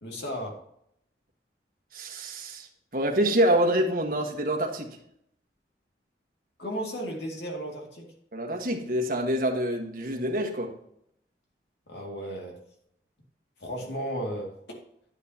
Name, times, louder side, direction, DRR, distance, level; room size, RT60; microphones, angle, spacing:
voice 1, 0.0-0.6 6.6-8.1 11.9-12.6 13.6-14.6, equal, 70° left, 0 dB, 2.4 m, -34 dB
voice 2, 1.9-2.7 2.9-5.0 8.3-10.7, right 1 dB, 50° right, 1 dB, 1.6 m, -26 dB
10.0 x 8.9 x 2.9 m, 0.72 s
head